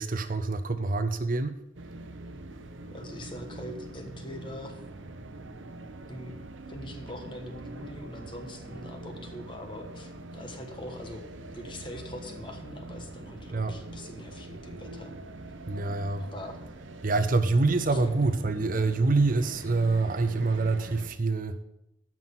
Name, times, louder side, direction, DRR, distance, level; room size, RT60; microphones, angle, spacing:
voice 1, 0.0-1.5 13.5-13.7 15.7-16.3 17.0-21.6, right 3 dB, 45° right, 0.6 m, -26 dB
sound 1, 1.8-21.1, right 2 dB, 75° right, 0.8 m, -43 dB
voice 2, 2.9-4.8 6.1-6.3 6.7-11.3 11.5-15.1 16.2-16.6 17.9-18.1, left 1 dB, 25° left, 1.3 m, -42 dB
12.0 x 5.9 x 5.9 m
head